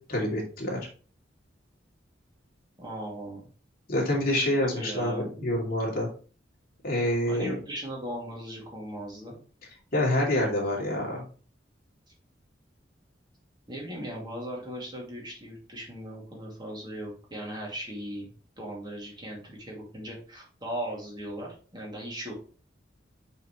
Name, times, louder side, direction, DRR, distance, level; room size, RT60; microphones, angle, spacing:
voice 1, 0.1-0.8 3.9-6.1 6.8-7.6 9.9-11.2, left 1 dB, 55° left, -2 dB, 2.5 m, -27 dB
voice 2, 2.8-3.4 4.8-5.5 7.2-9.4 13.7-18.3 18.6-22.4, right 1 dB, 25° right, -2 dB, 2.3 m, -38 dB
6.0 x 5.7 x 3.1 m, 0.39 s
head